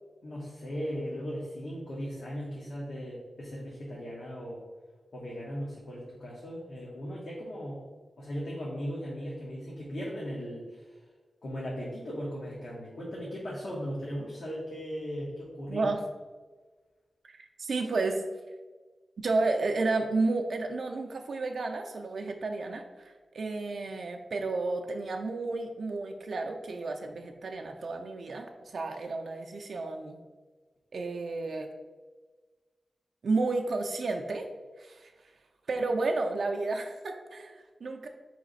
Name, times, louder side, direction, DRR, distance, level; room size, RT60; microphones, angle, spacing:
voice 1, 0.2-4.6 5.1-7.9 8.2-11.0 11.4-15.9, equal, 65° left, -5 dB, 0.9 m, -37 dB
voice 2, 15.7-16.0 17.3-18.2 19.2-30.2 30.9-31.7 33.2-34.5 34.8-35.1 35.7-38.1, right 3 dB, 70° right, 3 dB, 0.4 m, -32 dB
4.0 x 3.2 x 3.9 m, 1.3 s
wide cardioid pair, 80°, 0 cm